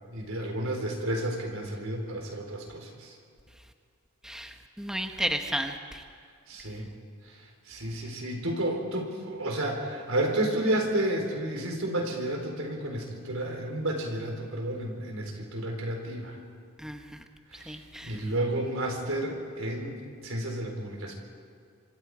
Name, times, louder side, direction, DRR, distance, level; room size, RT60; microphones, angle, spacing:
voice 1, 0.0-3.1 6.5-6.9 7.3-7.4 7.7-16.4 17.5-21.1, right 1 dB, 90° right, 2 dB, 4.2 m, -31 dB
voice 2, 4.2-5.8 16.8-17.0 17.7-18.1, right 1 dB, 5° right, 5 dB, 1.1 m, -32 dB
26.0 x 25.5 x 5.0 m, 2.3 s
head